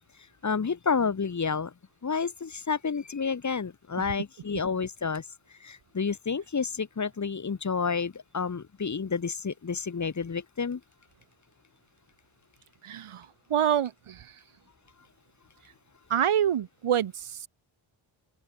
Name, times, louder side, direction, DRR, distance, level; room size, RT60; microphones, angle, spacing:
voice 1, 0.4-1.7 2.0-5.3 5.6-10.8, left 5 dB, 35° left, 2.7 m, -30 dB
voice 2, 12.8-14.3 16.1-17.5, right 9 dB, 80° right, 5.0 m, -27 dB
open air
wide cardioid pair, 150°, 50 cm